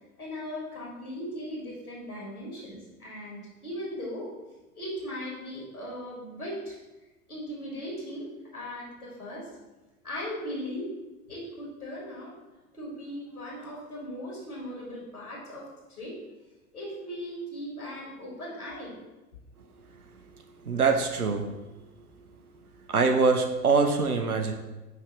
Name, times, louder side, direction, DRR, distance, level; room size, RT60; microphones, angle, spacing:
voice 1, 0.2-4.3 4.7-6.8 7.3-9.5 10.0-10.9 11.3-16.2 16.7-19.0, equal, 85° left, -4 dB, 2.0 m, -38 dB
voice 2, 20.6-21.6 22.9-24.5, right 4 dB, 85° right, 5 dB, 0.8 m, -24 dB
5.4 x 3.3 x 5.3 m, 1.1 s
figure-of-eight pair, 85°, 43 cm